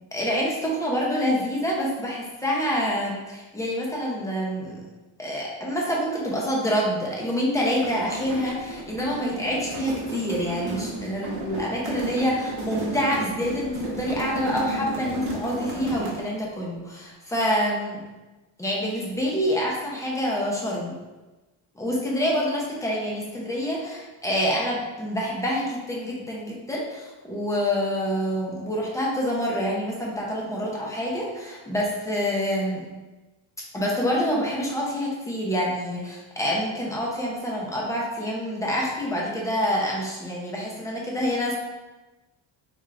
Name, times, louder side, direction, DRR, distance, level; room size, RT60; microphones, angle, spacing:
voice 1, 0.1-4.8 5.2-18.0 18.6-20.9 21.8-32.8 33.7-41.6, equal, 10° left, -3 dB, 0.3 m, -27 dB
sound 1, 7.6-16.3, right 2 dB, 50° right, 0.8 m, -33 dB
3.6 x 2.3 x 3.1 m, 1.2 s
cardioid pair, 165°, 48 cm